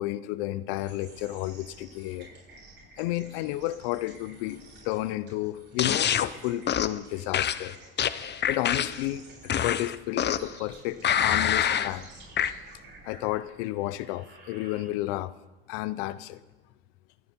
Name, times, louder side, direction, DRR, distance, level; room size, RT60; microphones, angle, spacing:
voice 1, 0.0-2.3 3.0-7.8 8.5-12.1 13.0-15.3 15.7-16.4, left 16 dB, 75° left, 16 dB, 0.7 m, -32 dB
sound 1, 0.7-15.3, right 2 dB, 40° right, 6.6 m, -51 dB
sound 2, 5.8-6.3 6.7-7.0 7.3-9.1 9.5-10.6 11.0-11.9 12.4-12.5, left 9 dB, 35° left, 0.7 m, -26 dB
25.5 x 9.5 x 4.4 m, 1.2 s
hypercardioid pair, 70°, 29 cm